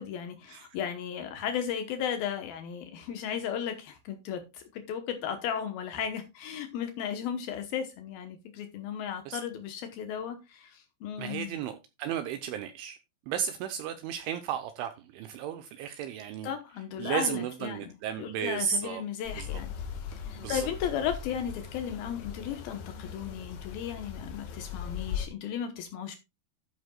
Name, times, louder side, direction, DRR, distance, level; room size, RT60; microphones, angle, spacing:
voice 1, 0.0-11.6 16.4-19.7 20.2-26.2, left 8 dB, 85° left, 2.1 m, -35 dB
voice 2, 11.2-13.0 13.3-16.5 17.0-19.0 19.3-19.5 20.4-20.7, right 8 dB, 80° right, 3.0 m, -34 dB
sound 1, 19.3-25.3, left 8 dB, 60° left, 3.2 m, -39 dB
12.5 x 9.3 x 2.3 m
omnidirectional pair, 6.0 m